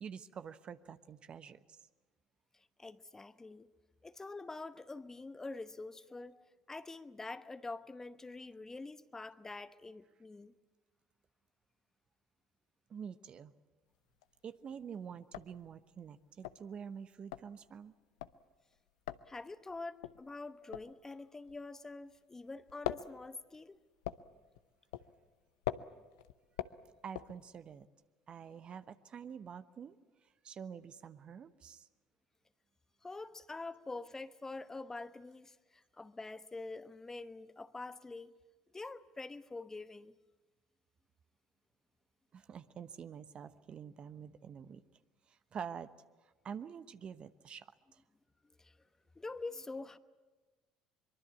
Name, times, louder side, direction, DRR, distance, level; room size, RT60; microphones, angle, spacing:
voice 1, 0.0-1.9 12.9-13.5 14.4-17.9 27.0-27.9 28.3-30.0 30.4-31.9 42.3-44.8 45.3-45.9 46.2-48.0, right 7 dB, 45° right, 1.0 m, -47 dB
voice 2, 2.5-3.7 4.0-10.5 19.3-23.8 33.0-38.3 38.7-40.1 48.6-48.8 49.1-50.0, left 3 dB, 20° left, 1.0 m, -46 dB
sound 1, 13.9-14.5 14.8-14.9 15.2-22.2 22.5-27.9, left 14 dB, 75° left, 0.7 m, -43 dB
23.5 x 23.0 x 8.4 m
hypercardioid pair, 60°, 3 cm